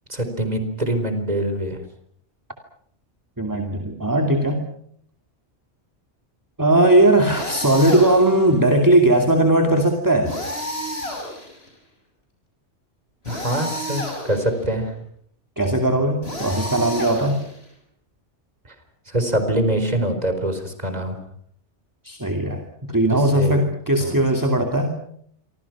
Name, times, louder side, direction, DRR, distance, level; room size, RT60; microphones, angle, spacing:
voice 1, 0.1-1.8 13.2-14.9 19.1-21.2 23.0-23.6 24.0-24.2, right 1 dB, 35° right, 8 dB, 4.5 m, -24 dB
voice 2, 3.4-4.7 6.6-10.3 15.6-17.4 22.0-22.6 22.9-25.0, right 1 dB, 15° right, 3 dB, 2.6 m, -18 dB
sound 1, 7.3-8.4 10.3-11.7 13.3-14.5 16.2-17.7, equal, 60° left, 7.2 m, -31 dB
27.5 x 25.0 x 6.1 m, 0.66 s
omnidirectional pair, 1.2 m